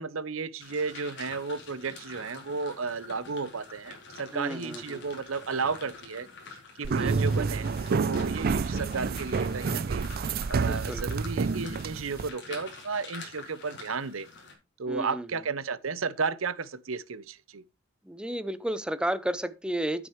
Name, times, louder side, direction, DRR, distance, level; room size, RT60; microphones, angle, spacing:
voice 1, 0.0-6.3 6.8-10.1 10.5-14.3 14.8-17.6, right 4 dB, 80° right, 0.7 m, -33 dB
sound 1, 0.6-14.5, left 4 dB, 60° left, 4.1 m, -47 dB
voice 2, 4.3-5.0 6.8-7.2 10.6-11.0 14.9-15.3 18.1-20.1, right 1 dB, 5° right, 0.6 m, -32 dB
sound 2, 6.8-12.3, right 4 dB, 45° right, 0.4 m, -28 dB
9.5 x 8.9 x 3.2 m
head